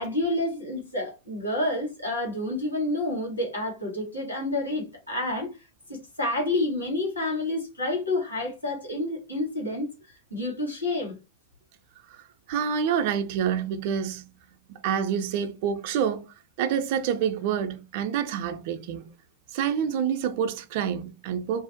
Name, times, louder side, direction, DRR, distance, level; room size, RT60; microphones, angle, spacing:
voice 1, 0.0-5.5 5.9-9.9 10.3-11.1, left 2 dB, 85° left, 1.2 m, -29 dB
voice 2, 12.5-14.3 14.7-16.3 16.6-19.0 19.5-21.6, right 8 dB, 50° right, 0.3 m, -27 dB
2.5 x 2.0 x 2.6 m
figure-of-eight pair, 90°, 0 cm